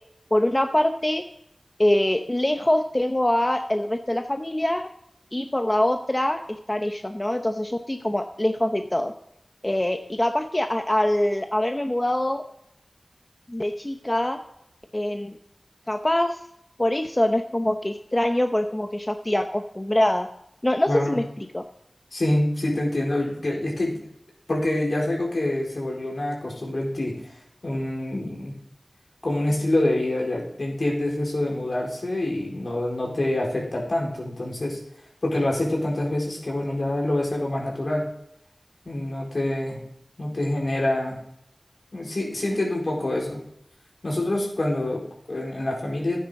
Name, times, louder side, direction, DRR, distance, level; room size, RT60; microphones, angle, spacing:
voice 1, 0.3-1.2 1.8-4.8 5.3-9.1 9.6-12.4 13.5-14.4 14.9-15.4 15.9-16.4 16.8-20.3 20.6-21.6, left 1 dB, 25° left, 6 dB, 0.8 m, -24 dB
voice 2, 20.9-21.2 22.1-24.0 24.5-27.3 27.6-28.6 29.2-34.8 35.2-38.1 38.8-39.8 40.2-41.2 41.9-43.4 44.0-46.2, left 1 dB, 70° left, -2 dB, 4.4 m, -26 dB
12.5 x 9.4 x 3.8 m, 0.75 s
wide cardioid pair, 45°, 0 cm